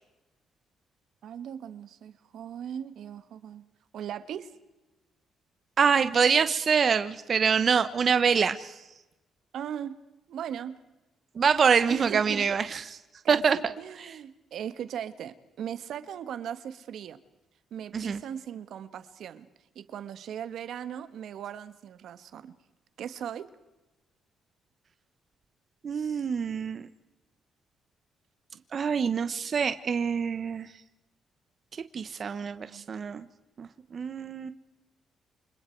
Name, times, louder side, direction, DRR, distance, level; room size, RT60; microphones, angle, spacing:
voice 1, 1.2-3.6 3.9-4.5 9.5-10.0 10.3-10.8 11.9-12.5 13.2-17.2 17.7-19.5 19.7-22.5 23.0-23.5 28.5-28.6 32.7-32.9, right 9 dB, 70° right, 12 dB, 1.5 m, -38 dB
voice 2, 5.8-8.8 11.4-13.0 13.3-13.7 14.0-14.1 17.9-18.2 25.8-26.9 28.7-30.7 31.9-33.2 33.6-34.5, right 6 dB, 45° right, 11 dB, 1.1 m, -25 dB
29.0 x 26.5 x 4.7 m, 1.0 s
cardioid pair, 90°, 0 cm